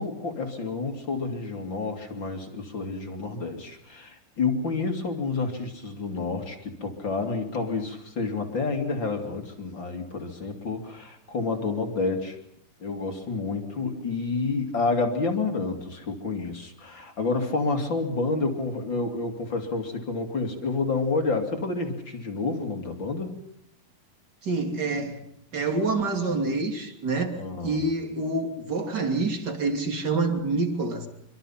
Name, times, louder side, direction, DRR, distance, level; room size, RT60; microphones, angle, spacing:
voice 1, 0.0-12.4 12.8-23.3 27.4-27.8, left 3 dB, 35° left, 2.9 m, -29 dB
voice 2, 24.4-25.2 25.5-27.4 27.6-31.1, right 3 dB, 30° right, 3.0 m, -27 dB
26.0 x 25.0 x 5.8 m
omnidirectional pair, 4.4 m